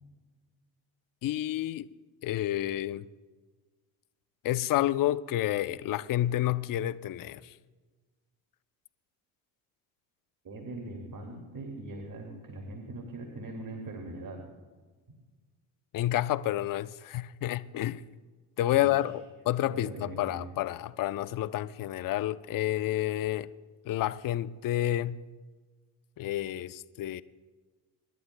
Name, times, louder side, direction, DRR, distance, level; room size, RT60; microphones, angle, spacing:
voice 1, 1.2-1.9 2.2-3.0 4.4-7.5 15.9-18.0 18.6-23.5 23.9-25.2 26.2-27.2, left 13 dB, 45° left, 0.6 m, -29 dB
voice 2, 10.4-14.4 18.7-19.1 19.7-20.5, right 2 dB, 40° right, 2.3 m, -41 dB
26.0 x 11.0 x 2.2 m
hypercardioid pair, 65°, 49 cm